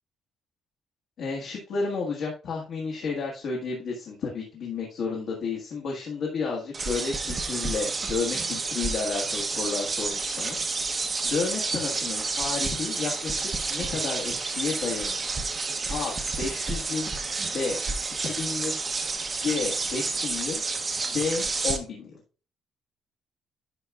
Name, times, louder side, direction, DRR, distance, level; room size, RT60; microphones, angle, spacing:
voice 1, 1.2-10.9 11.2-15.3 15.9-17.1 17.5-17.8 18.2-18.8 19.4-20.6 21.1-22.1, left 4 dB, 55° left, -2 dB, 1.4 m, -31 dB
sound 1, 6.7-21.8, right 4 dB, 25° right, 0.7 m, -30 dB
9.6 x 5.6 x 2.3 m, 0.35 s
cardioid pair, 170°, 0 cm